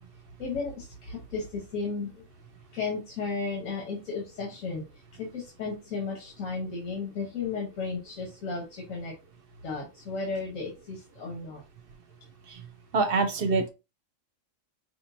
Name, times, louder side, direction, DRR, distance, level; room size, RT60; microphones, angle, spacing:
voice 1, 0.4-2.3 2.7-4.8 5.1-9.1 9.6-11.6, left 4 dB, 85° left, -2 dB, 1.6 m, -34 dB
voice 2, 12.9-13.7, right 3 dB, 55° right, 9 dB, 0.7 m, -25 dB
5.2 x 3.1 x 2.7 m, 0.27 s
omnidirectional pair, 1.3 m